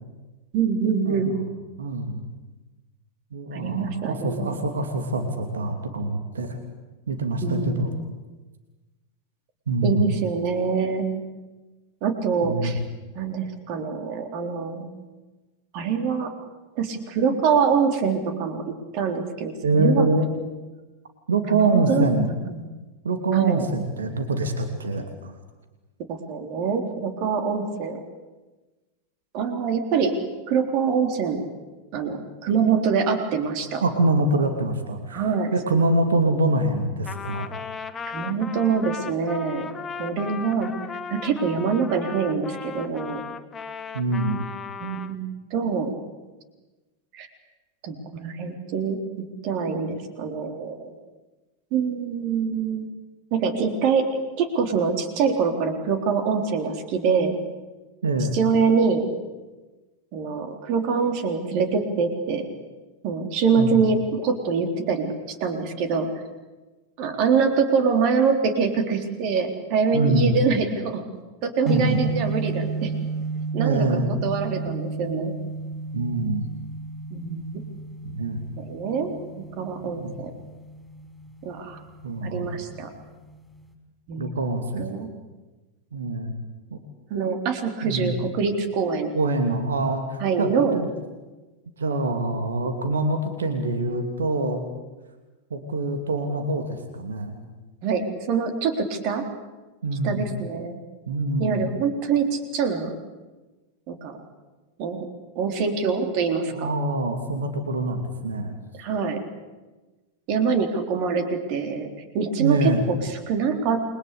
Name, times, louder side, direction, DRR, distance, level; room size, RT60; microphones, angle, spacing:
voice 1, 0.5-1.3 3.5-4.5 7.4-8.1 9.8-11.1 12.0-12.8 13.1-14.9 15.7-16.3 16.8-20.1 21.5-22.1 22.5-22.7 23.3-23.7 26.1-28.0 29.3-30.1 30.5-31.4 31.9-33.8 35.1-35.5 38.1-39.7 40.0-40.7 41.1-43.2 44.8-45.9 47.1-47.3 47.8-50.9 51.7-52.9 53.3-54.0 54.4-57.3 58.3-59.0 60.1-62.5 63.0-66.1 67.0-71.0 71.4-72.9 73.5-75.4 77.1-77.6 78.6-80.3 81.4-81.8 82.2-82.9 84.1-84.3 84.8-85.1 87.1-89.1 90.2-90.8 97.8-99.2 100.0-100.8 101.4-102.9 103.9-104.2 104.8-105.1 105.4-106.7 108.7-109.2 110.3-111.9 112.1-113.8, right 5 dB, 45° right, 6 dB, 3.8 m, -25 dB
voice 2, 1.8-2.2 3.3-6.6 7.1-7.9 9.7-10.1 12.4-12.7 19.6-20.3 21.3-22.3 23.0-25.3 33.8-35.3 35.5-37.5 43.9-44.5 58.0-58.3 63.6-63.8 69.9-70.3 71.6-72.0 73.6-74.1 75.9-76.5 78.0-78.4 79.8-80.1 82.0-82.5 84.2-84.8 85.9-86.3 87.8-88.1 89.1-90.9 91.8-94.6 95.5-97.4 99.8-100.2 101.1-101.7 106.5-108.5 112.4-112.8, right 2 dB, 70° right, 6 dB, 2.8 m, -24 dB
Trumpet, 37.0-45.2, left 6 dB, 20° left, 1.4 m, -37 dB
sound 1, 71.7-83.7, right 3 dB, 5° left, 5.8 m, -33 dB
29.0 x 22.5 x 8.5 m, 1.2 s
figure-of-eight pair, 90°, 0 cm